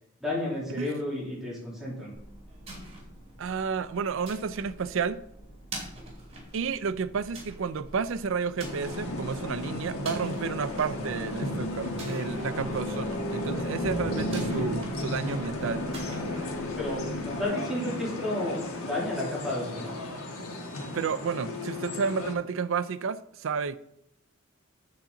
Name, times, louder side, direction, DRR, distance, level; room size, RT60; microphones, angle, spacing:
voice 1, 0.2-2.1 16.8-19.9, left 1 dB, ahead, 2.8 m, -32 dB
sound 1, 2.1-17.4, right 1 dB, 30° right, 2.6 m, -45 dB
voice 2, 3.4-5.2 6.5-15.9 20.9-23.8, right 5 dB, 65° right, 0.4 m, -31 dB
sound 2, 8.6-22.3, left 1 dB, 90° left, 1.5 m, -34 dB
8.7 x 6.9 x 3.9 m
head